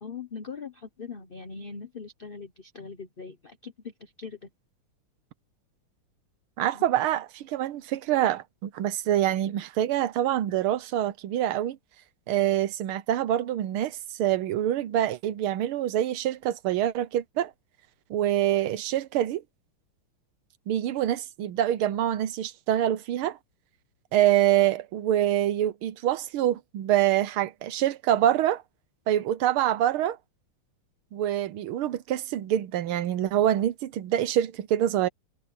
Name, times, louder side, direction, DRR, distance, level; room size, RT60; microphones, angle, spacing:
voice 1, 0.0-4.5 6.7-6.8, left 5 dB, 40° left, 0.8 m, -41 dB
voice 2, 6.6-11.8 12.3-17.5 18.1-19.4 20.7-23.4 24.1-28.6 29.1-30.2 31.1-35.1, right 12 dB, 75° right, 1.7 m, -25 dB
omnidirectional pair, 2.4 m